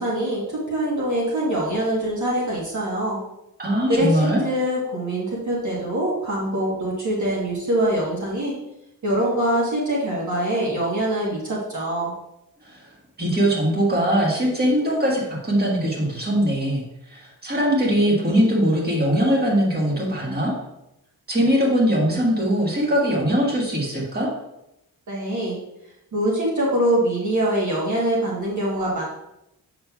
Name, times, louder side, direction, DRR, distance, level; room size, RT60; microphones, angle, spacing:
voice 1, 0.0-3.2 3.9-8.5 9.0-12.1 25.1-25.6 26.1-29.0, right 1 dB, 50° right, -5 dB, 1.2 m, -24 dB
voice 2, 3.6-4.4 12.7-12.8 13.2-16.8 17.1-20.5 21.3-24.3, equal, 25° right, -3 dB, 1.5 m, -21 dB
7.4 x 5.9 x 2.3 m, 0.87 s
wide cardioid pair, 165°, 37 cm